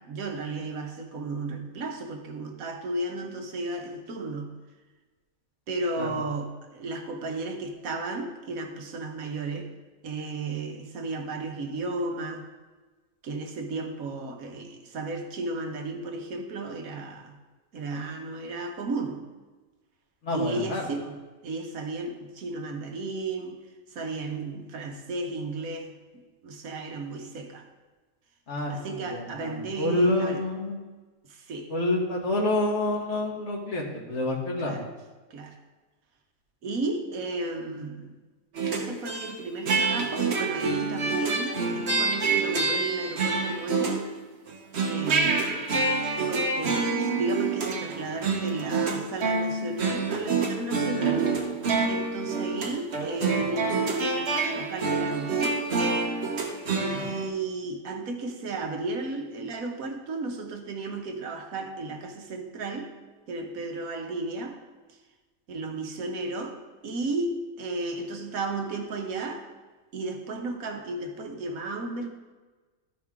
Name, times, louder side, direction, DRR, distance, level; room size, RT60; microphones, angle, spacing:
voice 1, 0.0-4.5 5.7-9.7 10.0-12.5 13.2-17.4 17.7-19.2 20.3-21.2 21.4-23.6 23.9-25.9 26.4-27.7 28.7-30.4 31.3-31.7 34.6-34.9 35.3-35.6 36.6-38.1 38.7-44.0 44.9-45.6 46.3-51.3 51.9-55.5 56.8-62.9 63.3-64.6 65.5-69.5 69.9-72.1, right 2 dB, 70° right, 4 dB, 1.4 m, -34 dB
voice 2, 20.2-20.9 28.5-30.8 31.7-34.8 57.0-57.1, left 2 dB, 50° left, -1 dB, 1.8 m, -28 dB
sound 1, 38.5-39.3 39.7-44.2 44.5-57.3, right 4 dB, 50° right, 1.1 m, -27 dB
13.0 x 4.8 x 3.6 m, 1.3 s
omnidirectional pair, 1.5 m